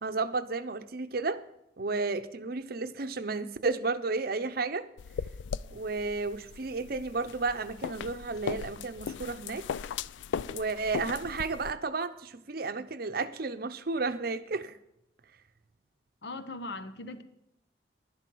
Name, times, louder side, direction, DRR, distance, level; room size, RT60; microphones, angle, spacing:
voice 1, 0.0-1.4 1.8-4.9 5.7-9.7 10.5-14.8, right 3 dB, 55° right, 0.7 m, -32 dB
sound 1, 5.0-11.7, left 6 dB, 85° left, 0.3 m, -38 dB
voice 2, 16.2-17.2, left 2 dB, 65° left, 0.9 m, -39 dB
11.5 x 11.5 x 4.6 m
head